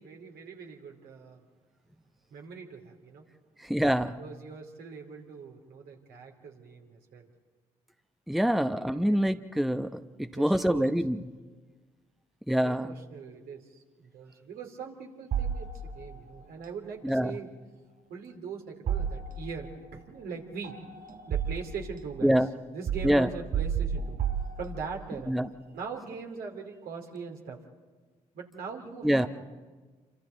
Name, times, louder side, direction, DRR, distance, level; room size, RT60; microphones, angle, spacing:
voice 1, 0.0-1.4 2.3-3.3 4.2-7.3 8.4-9.2 10.2-10.9 12.5-15.7 15.9-17.5 18.1-24.2 24.6-25.4 25.7-27.6 28.3-29.3, right 5 dB, 70° right, 1 dB, 3.0 m, -41 dB
voice 2, 3.7-4.2 8.3-9.9 10.2-11.2 12.5-12.9 17.0-17.3 22.2-22.5 23.0-23.3 25.3-25.5 29.0-29.3, equal, ahead, 9 dB, 0.9 m, -25 dB
sound 1, 15.3-16.2 18.9-19.7 20.6-22.0 22.9-25.1, right 7 dB, 50° right, 1.3 m, -32 dB
28.0 x 25.5 x 4.0 m, 1.4 s
hypercardioid pair, 50°, 16 cm